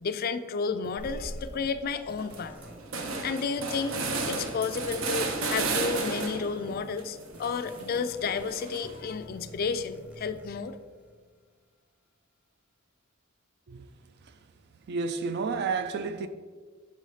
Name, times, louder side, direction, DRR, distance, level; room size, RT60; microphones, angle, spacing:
voice 1, 0.0-2.5 3.2-4.0 4.3-10.8, left 5 dB, 45° left, 0.3 m, -32 dB
sound 1, 0.8-11.6, equal, 5° right, 0.6 m, -50 dB
sound 2, 1.0-1.4 1.9-2.0 2.2-6.6 7.0-9.1, right 3 dB, 70° right, 0.8 m, -33 dB
voice 2, 14.9-16.3, right 4 dB, 50° right, 0.4 m, -31 dB
6.3 x 4.1 x 4.8 m
head